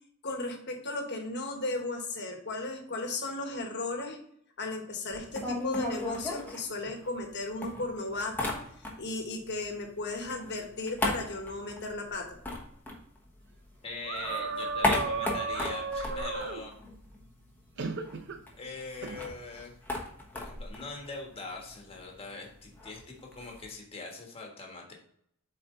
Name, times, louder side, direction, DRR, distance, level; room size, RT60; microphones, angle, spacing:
voice 1, 0.2-4.2 4.6-8.5 9.0-12.4, left 2 dB, 50° left, 3 dB, 1.4 m, -35 dB
sound 1, 5.1-7.3 7.6-9.2 9.5-13.7 14.0-17.3 17.6-17.7 17.9-23.7, left 2 dB, 10° left, 1.2 m, -35 dB
voice 2, 13.8-16.7 18.5-19.7 20.3-24.9, left 3 dB, 25° left, 0 dB, 1.5 m, -42 dB
sound 2, 14.0-16.6 17.8-18.4 19.0-19.2, right 4 dB, 55° right, 0.7 m, -34 dB
7.6 x 4.3 x 3.8 m, 0.69 s
head